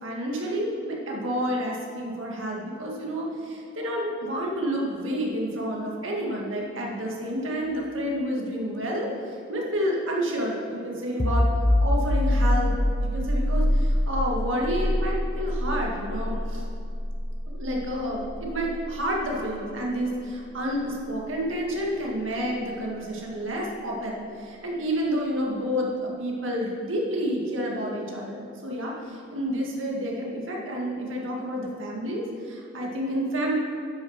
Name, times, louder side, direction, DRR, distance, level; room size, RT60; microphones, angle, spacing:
voice 1, 0.0-9.1 9.5-11.5 11.8-12.7 13.0-16.6 17.5-33.5, equal, 90° right, -2 dB, 1.8 m, -29 dB
sound 1, 11.2-22.6, left 1 dB, 35° left, 0.9 m, -27 dB
11.0 x 6.5 x 5.8 m, 2.6 s
head